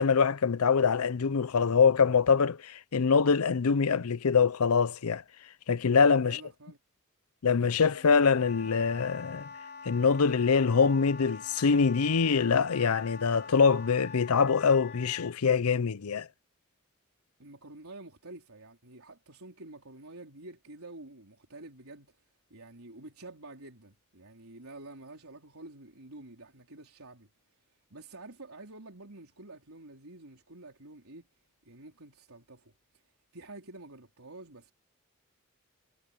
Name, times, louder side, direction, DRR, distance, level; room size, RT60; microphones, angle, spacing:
voice 1, 0.0-5.2 5.7-6.4 7.4-9.5 9.9-16.3, left 5 dB, 90° left, 0.6 m, -24 dB
voice 2, 6.2-6.8 17.4-22.2 22.5-27.3 27.7-31.3 31.6-33.0 33.3-34.7, right 2 dB, 80° right, 4.0 m, -49 dB
Wind instrument woodwind instrument, 7.8-15.4, left 5 dB, 50° left, 3.1 m, -45 dB
head